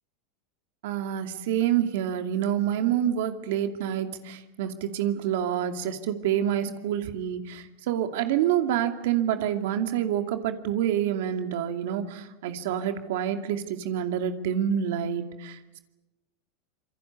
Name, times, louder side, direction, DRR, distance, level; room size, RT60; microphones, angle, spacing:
voice 1, 0.8-15.8, right 10 dB, 75° right, 7 dB, 2.5 m, -27 dB
27.0 x 24.0 x 8.3 m, 1.0 s
supercardioid pair, 145°, 0 cm